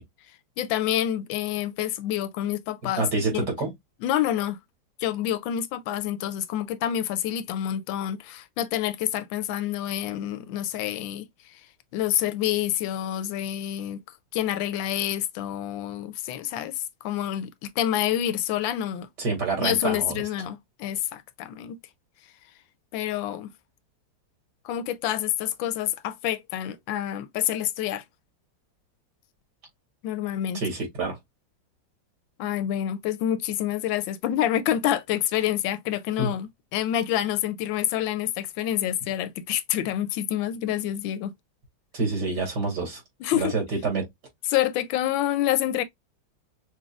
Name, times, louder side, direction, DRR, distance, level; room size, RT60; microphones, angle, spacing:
voice 1, 0.6-3.1 3.3-3.5 4.0-4.6 5.0-11.3 11.9-14.0 14.3-19.1 19.6-21.8 22.9-23.5 24.6-28.0 30.0-30.6 32.4-41.3 43.2-43.5 44.5-45.8, left 11 dB, 90° left, 1.3 m, -27 dB
voice 2, 3.0-3.7 19.2-20.2 30.5-31.2 36.2-36.3 41.9-43.0 43.4-44.1, right 3 dB, 60° right, 2.5 m, -27 dB
6.1 x 2.2 x 2.3 m
omnidirectional pair, 2.0 m